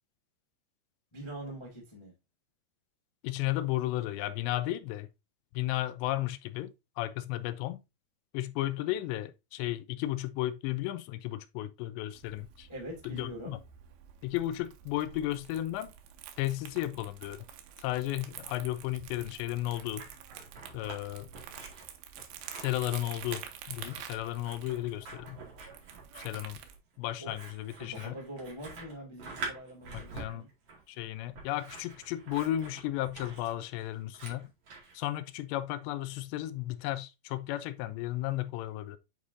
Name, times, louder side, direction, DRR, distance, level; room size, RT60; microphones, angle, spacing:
voice 1, 1.1-2.1 12.7-13.6 27.2-27.3 27.8-30.5, right 1 dB, 30° left, 0.5 m, -43 dB
voice 2, 3.2-5.1 5.5-7.8 8.3-12.7 13.0-13.6 14.2-15.9 16.4-17.4 17.8-20.1 20.7-21.3 22.6-25.4 26.1-26.6 27.0-28.2 29.9-30.5 30.9-34.5 34.9-39.0, left 15 dB, 90° left, 2.9 m, -34 dB
Crumpling crinkling, 12.1-26.8, right 9 dB, 90° right, 3.1 m, -48 dB
Scissors, 19.4-21.0 21.3-35.0, right 4 dB, 45° right, 2.5 m, -46 dB
8.9 x 4.9 x 2.6 m
omnidirectional pair, 5.0 m